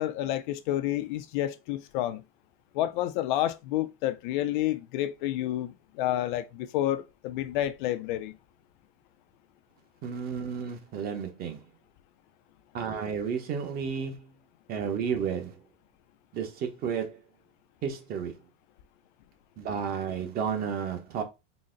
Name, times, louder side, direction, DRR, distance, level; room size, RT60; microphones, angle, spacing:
voice 1, 0.0-2.2 2.7-8.4, left 13 dB, 55° left, 0.4 m, -29 dB
voice 2, 10.0-11.6 12.7-14.3 14.7-15.6 16.3-17.2 17.8-18.3 19.6-21.2, right 7 dB, 30° right, 0.8 m, -32 dB
3.9 x 2.0 x 3.7 m
supercardioid pair, 140°, 30 cm